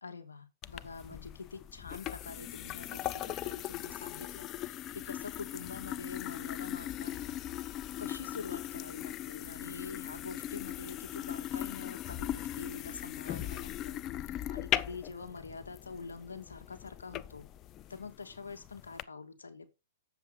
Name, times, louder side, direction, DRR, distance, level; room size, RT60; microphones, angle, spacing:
voice 1, 0.0-7.4 8.0-14.0 14.5-17.5 17.9-19.7, left 4 dB, 90° left, 1.9 m, -45 dB
sound 1, 0.6-19.0, left 12 dB, 30° left, 0.5 m, -39 dB
8.0 x 7.5 x 3.9 m
hypercardioid pair, 120°, 0 cm